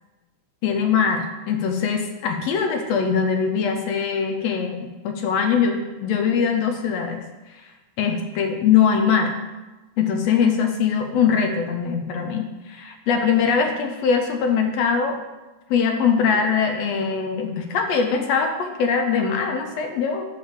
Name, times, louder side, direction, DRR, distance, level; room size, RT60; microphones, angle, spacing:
voice 1, 0.6-7.2 8.0-9.3 10.0-15.2 15.7-20.3, left 6 dB, 75° left, 5 dB, 1.6 m, -22 dB
10.0 x 3.5 x 7.2 m, 1.1 s
omnidirectional pair, 3.4 m